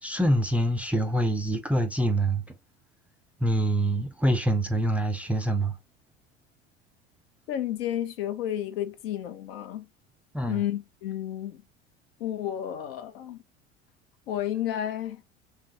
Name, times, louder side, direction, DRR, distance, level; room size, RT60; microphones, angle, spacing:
voice 1, 0.0-2.5 3.4-5.8 10.3-10.7, right 1 dB, 5° right, 0.5 m, -25 dB
voice 2, 7.5-9.9 10.5-11.6 12.2-13.4 14.3-15.2, left 11 dB, 60° left, 0.7 m, -31 dB
3.3 x 3.2 x 2.8 m
figure-of-eight pair, 70°, 34 cm